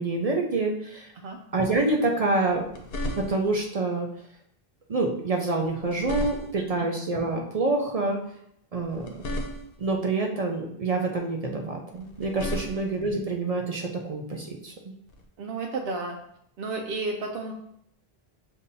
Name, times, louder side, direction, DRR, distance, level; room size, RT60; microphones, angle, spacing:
voice 1, 0.0-1.1 1.5-2.6 3.1-4.1 4.9-8.2 8.7-9.1 9.8-14.9, right 2 dB, 50° right, 1 dB, 0.5 m, -27 dB
sound 1, 2.5-3.6 5.6-6.8 8.8-9.9 11.9-13.1 15.1-15.3, left 1 dB, 65° left, 0.9 m, -35 dB
voice 2, 15.4-16.2 16.6-17.5, right 3 dB, 80° right, 1 dB, 0.8 m, -32 dB
6.7 x 2.7 x 2.6 m, 0.73 s
omnidirectional pair, 1.0 m